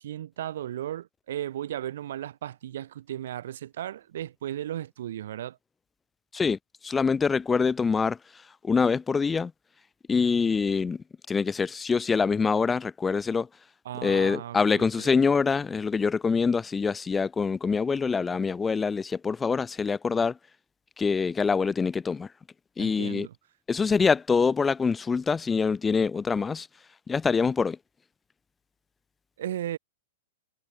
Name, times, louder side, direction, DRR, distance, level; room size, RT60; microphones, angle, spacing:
voice 1, 0.0-5.6 13.8-15.1 22.8-23.3 29.4-29.8, right 11 dB, 70° right, 1.6 m, -35 dB
voice 2, 6.3-8.2 8.6-9.5 10.1-13.5 14.0-20.4 21.0-22.3 22.8-23.3 23.7-26.7 27.1-27.8, left 5 dB, 10° left, 0.5 m, -25 dB
hypercardioid pair, 155°, 0 cm